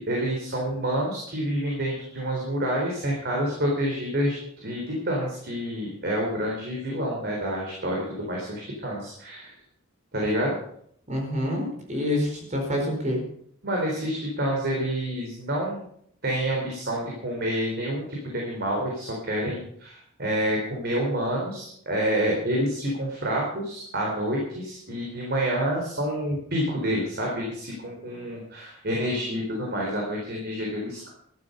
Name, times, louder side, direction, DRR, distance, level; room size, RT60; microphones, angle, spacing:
voice 1, 0.0-4.4 4.6-9.5 10.1-10.6 13.6-15.9 16.2-31.1, equal, 50° right, -2 dB, 3.9 m, -28 dB
voice 2, 11.1-13.2, left 1 dB, 35° right, 2 dB, 4.5 m, -27 dB
13.5 x 12.0 x 5.5 m, 0.67 s
head